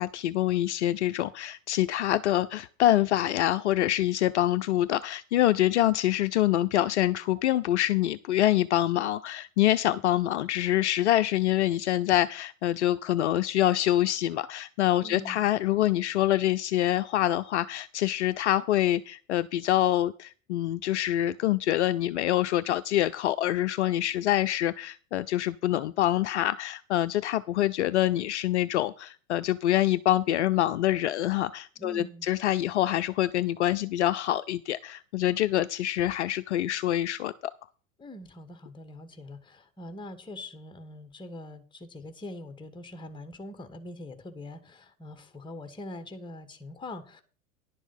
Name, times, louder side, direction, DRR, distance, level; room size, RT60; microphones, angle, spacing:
voice 1, 0.0-37.3, left 13 dB, 55° left, 0.6 m, -25 dB
voice 2, 15.0-15.5 31.8-32.3 38.0-47.2, left 1 dB, 10° left, 1.5 m, -43 dB
11.0 x 7.1 x 5.4 m
figure-of-eight pair, 85°, 42 cm